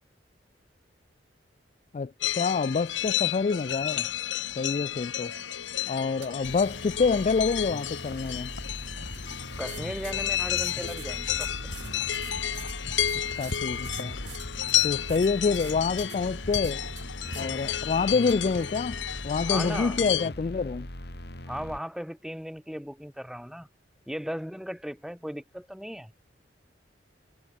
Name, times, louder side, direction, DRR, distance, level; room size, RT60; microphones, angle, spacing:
voice 1, 1.9-4.1 4.4-5.3 5.9-8.5 13.4-14.2 14.8-16.8 17.4-20.9, left 4 dB, 40° left, 0.3 m, -27 dB
sound 1, 2.2-20.3, left 10 dB, 85° left, 1.9 m, -32 dB
sound 2, 3.0-18.7, right 4 dB, 65° right, 5.4 m, -48 dB
sound 3, 6.4-21.8, left 1 dB, 60° left, 5.3 m, -41 dB
voice 2, 9.6-11.8 19.5-20.0 21.5-23.7 24.1-26.1, equal, ahead, 6.5 m, -37 dB
head